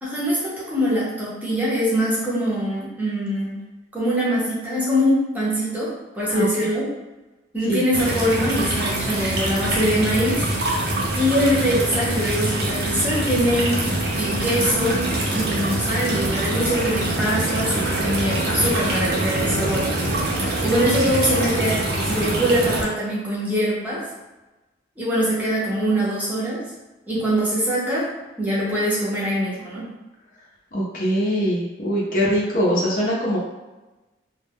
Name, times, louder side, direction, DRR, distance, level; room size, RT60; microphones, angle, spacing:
voice 1, 0.0-3.6 3.9-6.9 7.5-10.4 11.2-13.7 14.2-15.0 15.3-19.9 20.6-24.0 25.0-26.6 27.1-28.1 28.4-29.8, equal, 10° right, -8 dB, 0.6 m, -23 dB
sound 1, 7.9-22.8, right 1 dB, 60° right, 0.5 m, -24 dB
voice 2, 30.7-33.4, equal, 45° left, -5 dB, 0.6 m, -22 dB
2.2 x 2.0 x 3.4 m, 1.1 s
head